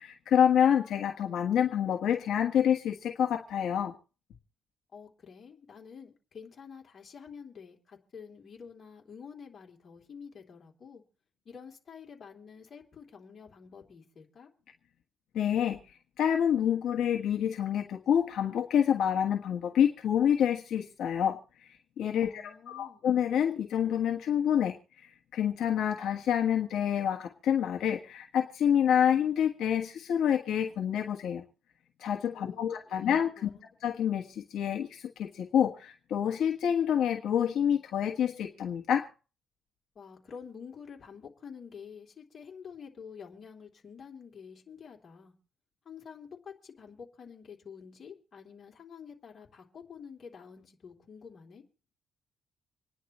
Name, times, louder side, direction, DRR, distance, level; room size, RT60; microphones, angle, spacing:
voice 1, 0.0-3.9 15.3-15.8 16.2-31.4 32.0-33.5 33.8-39.1, left 9 dB, 80° left, 2 dB, 1.3 m, -27 dB
voice 2, 4.9-11.0 11.4-14.5 22.1-23.0 32.3-33.1 33.4-33.7 39.9-45.3 45.8-51.6, left 6 dB, 40° left, 0 dB, 3.0 m, -48 dB
27.0 x 10.0 x 3.1 m, 0.36 s
cardioid pair, 125°, 0 cm